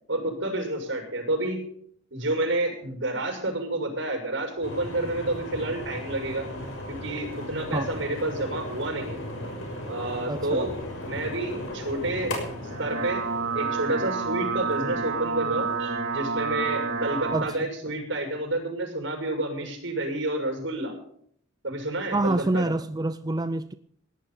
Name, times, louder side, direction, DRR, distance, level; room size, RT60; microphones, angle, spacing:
voice 1, 0.1-1.6 2.1-6.5 6.9-9.2 9.8-10.7 11.0-12.3 12.8-13.2 13.5-20.9 21.6-22.6, right 2 dB, 65° right, 2 dB, 6.3 m, -29 dB
sound 1, 4.6-15.7, left 1 dB, 70° left, 6.2 m, -37 dB
voice 2, 10.3-10.7 11.6-11.7 17.3-17.7 22.1-23.7, right 2 dB, 20° right, 11 dB, 0.5 m, -27 dB
sound 2, 12.6-17.5, right 5 dB, 85° right, 2.6 m, -29 dB
17.5 x 11.5 x 5.6 m, 0.63 s
head